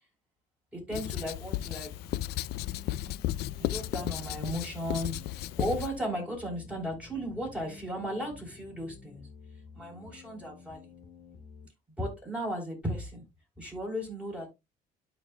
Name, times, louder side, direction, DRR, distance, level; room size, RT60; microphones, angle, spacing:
voice 1, 0.7-1.9 3.6-9.3 9.7-10.8 12.0-13.3 13.6-14.5, equal, 5° right, -1 dB, 3.9 m, -35 dB
Writing, 0.9-5.9, left 15 dB, 75° left, 0.4 m, -34 dB
sound 1, 1.7-11.7, left 5 dB, 50° left, 2.1 m, -52 dB
12.5 x 4.3 x 2.2 m, 0.23 s
cardioid pair, 110°, 17 cm